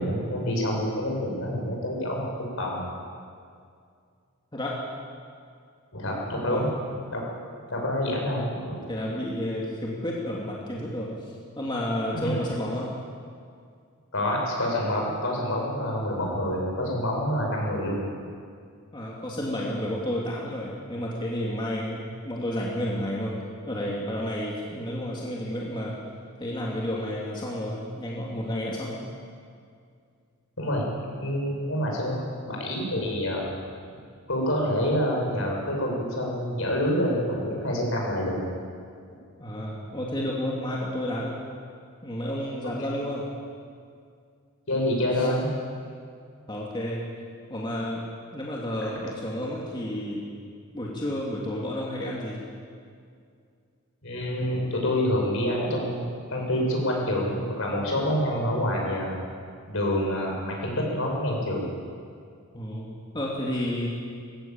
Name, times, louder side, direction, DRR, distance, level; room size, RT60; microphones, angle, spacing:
voice 1, 0.0-2.3 2.6-2.8 5.9-6.7 7.1-7.2 7.7-8.8 12.1-12.4 14.1-18.0 30.6-30.8 31.2-33.5 33.9-34.0 34.3-38.4 42.8-42.9 44.7-45.5 54.0-56.0 56.3-59.2 59.7-61.7, equal, 65° left, -1 dB, 6.0 m, -27 dB
voice 2, 8.9-12.9 18.9-23.3 23.7-25.9 26.4-29.0 39.4-41.4 42.0-43.3 45.1-45.3 46.5-47.0 47.5-48.0 48.3-50.2 50.7-52.4 62.5-63.9, left 1 dB, 20° left, -4 dB, 2.5 m, -31 dB
19.5 x 15.5 x 8.8 m, 2.3 s
head